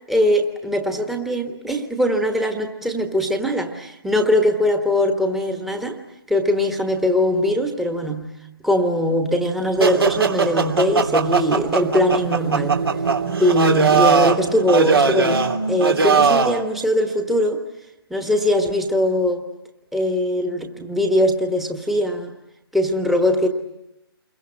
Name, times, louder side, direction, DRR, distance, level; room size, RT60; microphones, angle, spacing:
voice 1, 0.1-6.0 6.3-8.3 8.6-12.8 13.4-17.6 18.1-19.5 19.9-22.3 22.7-23.5, left 1 dB, ahead, 5 dB, 1.3 m, -21 dB
sound 1, 9.8-16.6, right 5 dB, 75° right, 3.0 m, -19 dB
29.0 x 23.0 x 8.9 m, 0.90 s
figure-of-eight pair, 150°, 13 cm